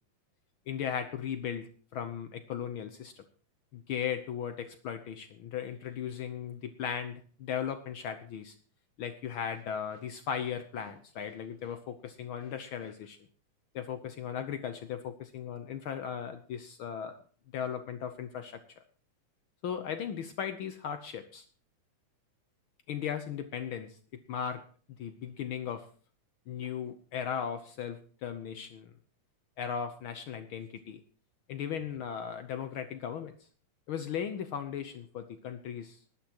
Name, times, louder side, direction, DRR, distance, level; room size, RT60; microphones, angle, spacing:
voice 1, 0.7-3.2 3.7-8.5 9.0-13.2 13.7-17.2 17.5-18.6 19.6-21.4 22.9-24.0 24.3-24.6 25.0-25.9 26.5-28.9 29.6-31.0 31.5-33.3 33.9-36.0, left 8 dB, 75° left, 9 dB, 1.1 m, -37 dB
19.5 x 13.0 x 3.0 m, 0.42 s
omnidirectional pair, 3.6 m